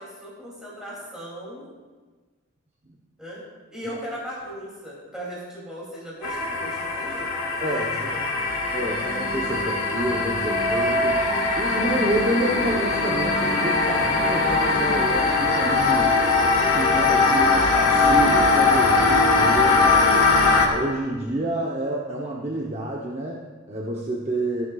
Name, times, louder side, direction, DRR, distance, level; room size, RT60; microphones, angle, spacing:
voice 1, 0.0-1.6 3.2-3.4 3.7-8.2, equal, 5° right, -7 dB, 2.6 m, -38 dB
sound 1, 6.2-20.7, left 3 dB, 90° left, 1.8 m, -21 dB
voice 2, 7.6-8.5 8.7-11.2 11.5-16.2 16.7-20.0 20.5-24.7, right 1 dB, 30° right, -2 dB, 0.8 m, -29 dB
14.5 x 11.0 x 2.3 m, 1.4 s
head